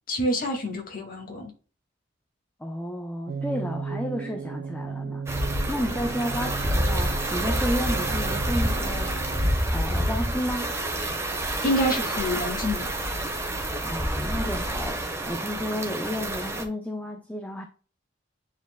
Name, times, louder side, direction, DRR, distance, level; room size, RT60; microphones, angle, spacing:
voice 1, 0.1-1.5 11.6-13.0, equal, 50° left, 2.1 m, -27 dB
voice 2, 2.6-9.1 9.7-10.8 13.8-17.6, equal, 10° left, 0.7 m, -32 dB
sound 1, 3.3-9.6, right 5 dB, 55° right, 0.4 m, -35 dB
sound 2, 5.3-16.6, right 1 dB, 15° right, 1.2 m, -28 dB
9.7 x 4.4 x 2.3 m
head